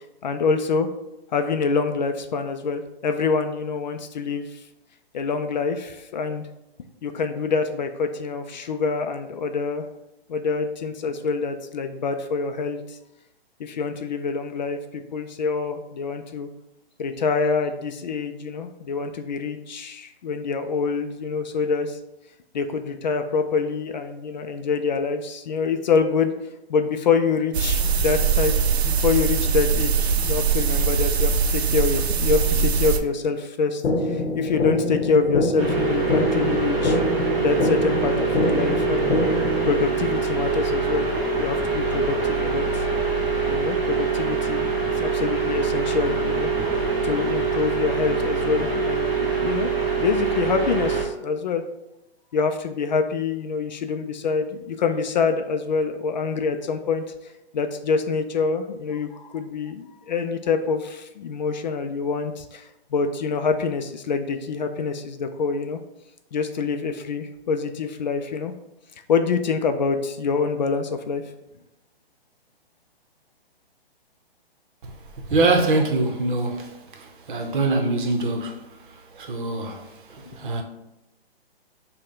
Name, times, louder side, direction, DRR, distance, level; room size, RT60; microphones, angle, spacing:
voice 1, 0.2-0.9 1.3-4.6 5.1-6.4 7.0-9.8 10.3-13.0 13.6-16.5 17.0-22.0 22.5-26.3 26.7-28.5 28.8-37.0 37.4-39.4 39.7-41.1 41.3-42.8 43.5-49.7 50.0-51.6 52.3-65.8 66.3-68.5 69.1-71.2 80.3-80.4, left 5 dB, 45° left, 0.4 m, -26 dB
sound 1, 27.5-33.0, right 6 dB, 85° right, 0.6 m, -22 dB
sound 2, 33.8-39.8, left 2 dB, 80° left, 0.8 m, -25 dB
sound 3, 35.6-51.0, right 5 dB, 15° right, 1.2 m, -24 dB
voice 2, 75.3-78.6 79.1-80.6, right 2 dB, 55° right, 0.9 m, -24 dB
6.2 x 2.3 x 3.6 m
hypercardioid pair, 145°, 31 cm